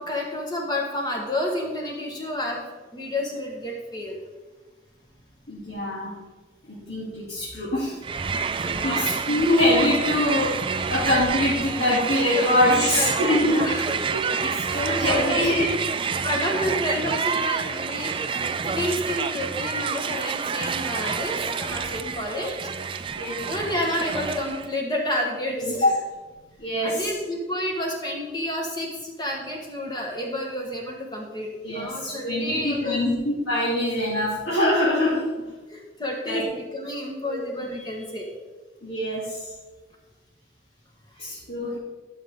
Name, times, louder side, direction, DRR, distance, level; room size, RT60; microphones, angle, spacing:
voice 1, 0.0-4.2 8.6-9.2 12.3-13.8 14.6-15.5 16.2-18.1 18.6-22.7 23.5-25.9 26.8-33.1 35.7-38.3, left 1 dB, 20° left, 0 dB, 1.5 m, -30 dB
voice 2, 5.5-6.1 6.7-8.0 8.6-13.6 14.1-15.7 22.0-22.1 23.1-23.4 25.6-25.9 26.6-27.1 31.6-35.2 36.3-36.4 37.2-37.4 38.8-39.4 41.2-41.8, left 1 dB, 65° left, -9 dB, 2.6 m, -24 dB
Crowd, 8.0-24.7, right 5 dB, 25° right, 0.3 m, -28 dB
13.0 x 6.5 x 3.7 m, 1.3 s
head